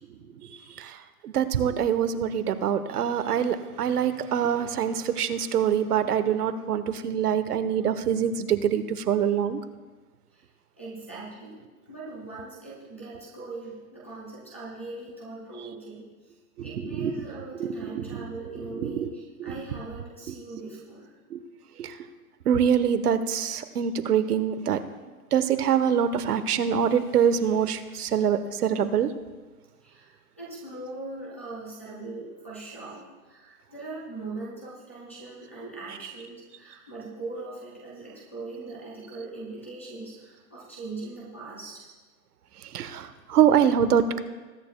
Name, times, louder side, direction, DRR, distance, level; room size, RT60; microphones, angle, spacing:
voice 1, 1.2-9.6 16.6-17.2 17.6-19.1 19.4-19.6 20.3-20.4 21.3-21.4 21.8-21.9 22.5-24.8 25.3-29.1 42.7-44.2, right 8 dB, 85° right, 11 dB, 1.0 m, -25 dB
voice 2, 10.8-11.6 11.9-16.1 16.6-21.1 29.8-41.8, right 3 dB, 10° left, -8 dB, 0.4 m, -40 dB
21.0 x 9.1 x 2.3 m, 1.3 s
hypercardioid pair, 170°, 45 cm